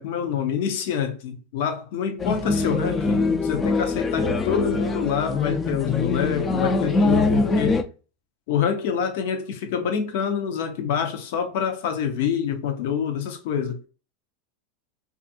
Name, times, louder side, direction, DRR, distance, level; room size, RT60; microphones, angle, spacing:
voice 1, 0.0-7.8 8.5-13.8, left 7 dB, 70° left, 0.6 m, -26 dB
sound 1, 2.2-7.8, left 3 dB, 25° left, 0.3 m, -23 dB
2.6 x 2.4 x 2.6 m
supercardioid pair, 115°, 0 cm